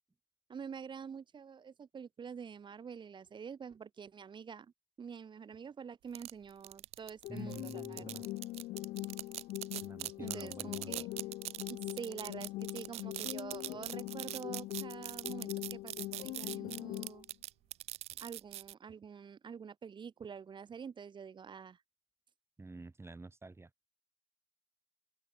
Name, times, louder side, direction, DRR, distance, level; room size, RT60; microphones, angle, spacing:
voice 1, 0.5-4.7 5.0-8.2 10.2-11.1 11.7-17.3 18.2-21.8, right 6 dB, 45° right, 1.4 m, -47 dB
sound 1, 6.1-18.7, right 15 dB, 70° right, 1.1 m, -42 dB
sound 2, 7.2-17.2, left 18 dB, 70° left, 0.5 m, -42 dB
voice 2, 7.3-8.2 9.8-11.0 22.6-23.7, right 3 dB, 25° right, 2.7 m, -48 dB
open air
hypercardioid pair, 45°, 11 cm